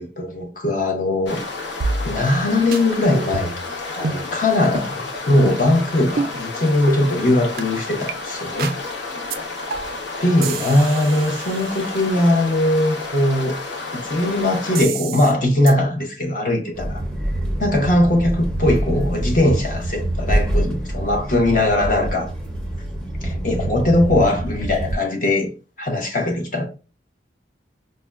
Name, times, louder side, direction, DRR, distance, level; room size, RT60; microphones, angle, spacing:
voice 1, 0.0-1.4 2.0-3.5 3.8-8.7 10.2-13.6 13.9-17.0 17.6-22.3 23.2-25.5 25.8-26.6, left 1 dB, 45° left, 0.7 m, -20 dB
sound 1, 1.2-14.8, left 3 dB, 75° left, 0.9 m, -31 dB
sound 2, 1.8-2.4 2.7-2.8 3.3-3.7 4.0-4.2 4.8-4.9 5.5-5.8 6.2-6.3 6.9-7.0 7.6-7.7 8.1-8.2 8.6-8.8 9.3-9.4 9.7-10.0 10.4-12.3 14.8-15.3 15.7-15.8, right 4 dB, 55° right, 0.4 m, -28 dB
sound 3, 16.7-25.0, right 1 dB, 5° left, 0.6 m, -25 dB
4.9 x 2.2 x 2.3 m
head